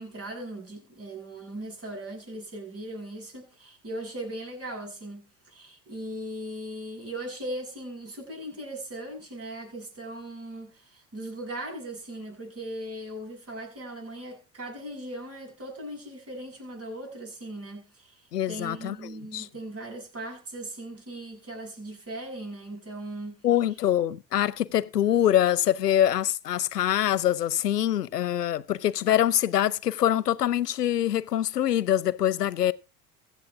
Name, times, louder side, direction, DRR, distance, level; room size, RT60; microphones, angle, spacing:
voice 1, 0.0-23.4, right 1 dB, 30° right, 7.6 m, -39 dB
voice 2, 18.3-19.5 23.4-32.7, left 11 dB, 85° left, 0.7 m, -24 dB
23.0 x 8.2 x 2.4 m
figure-of-eight pair, 65°, 46 cm